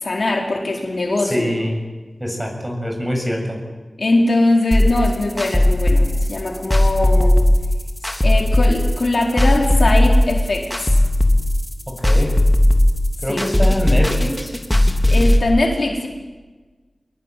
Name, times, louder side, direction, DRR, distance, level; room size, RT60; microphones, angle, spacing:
voice 1, 0.0-1.5 4.0-7.4 8.2-11.0 13.3-13.4 15.1-16.1, left 2 dB, 65° left, 1 dB, 4.6 m, -20 dB
voice 2, 1.3-1.8 2.2-3.6 12.0-12.3 13.2-14.5, equal, 10° right, 2 dB, 7.6 m, -24 dB
sound 1, 4.7-15.4, left 1 dB, 10° left, 3.4 m, -16 dB
24.5 x 22.0 x 9.4 m, 1.3 s
wide cardioid pair, 90°, 0 cm